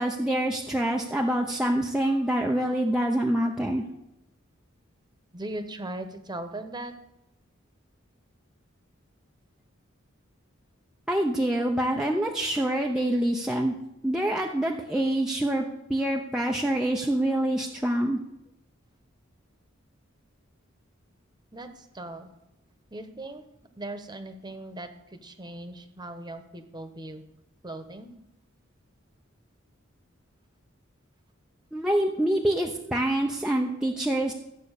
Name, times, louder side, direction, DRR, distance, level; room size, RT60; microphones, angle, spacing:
voice 1, 0.0-3.8 11.1-13.8 14.0-18.2 31.7-34.3, right 1 dB, 5° right, -1 dB, 0.8 m, -26 dB
voice 2, 5.3-6.9 21.5-22.3 22.9-23.4 23.8-27.2 27.6-28.1, right 1 dB, 20° right, 8 dB, 1.2 m, -39 dB
14.0 x 8.3 x 6.6 m, 0.89 s
head